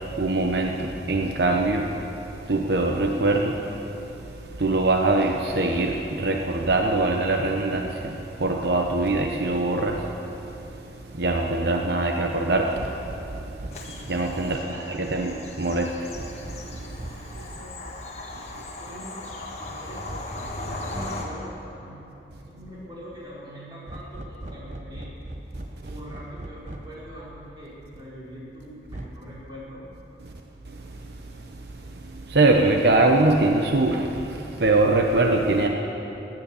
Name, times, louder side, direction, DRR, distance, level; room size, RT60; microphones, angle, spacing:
voice 1, 0.2-1.9 2.5-3.6 4.6-8.1 8.4-10.0 11.2-12.8 14.1-15.9 32.3-34.1 34.6-35.7, right 2 dB, 70° right, 2 dB, 0.9 m, -22 dB
sound 1, 12.8-14.0 16.1-17.4 20.1-21.3 23.9-27.0 28.9-29.1, right 1 dB, 45° right, 0.9 m, -39 dB
Bird vocalization bird call bird song / Train, 13.7-21.3, left 2 dB, 35° left, 1.7 m, -38 dB
voice 2, 14.4-15.3 17.4-18.2 18.8-20.2 20.6-25.1 25.9-29.9, equal, 25° right, -8 dB, 4.8 m, -42 dB
17.0 x 11.0 x 7.1 m, 2.9 s
head